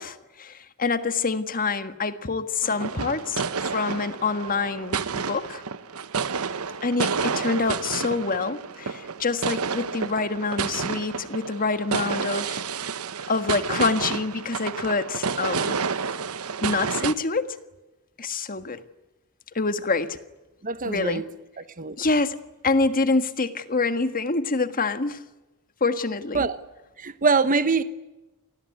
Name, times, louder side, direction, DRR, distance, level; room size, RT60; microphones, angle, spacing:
voice 1, 0.0-5.6 6.8-12.6 13.3-15.8 16.6-17.5 18.2-18.8 19.5-20.2 20.8-21.2 22.0-22.4 22.6-25.2 25.8-26.5, left 3 dB, 40° left, 10 dB, 1.6 m, -26 dB
sound 1, 2.6-17.1, right 5 dB, 85° right, 1.1 m, -30 dB
voice 2, 20.6-21.3 21.8-22.0 26.3-26.6 27.0-27.8, right 4 dB, 40° right, 12 dB, 1.0 m, -23 dB
28.0 x 20.0 x 9.5 m, 1.1 s
head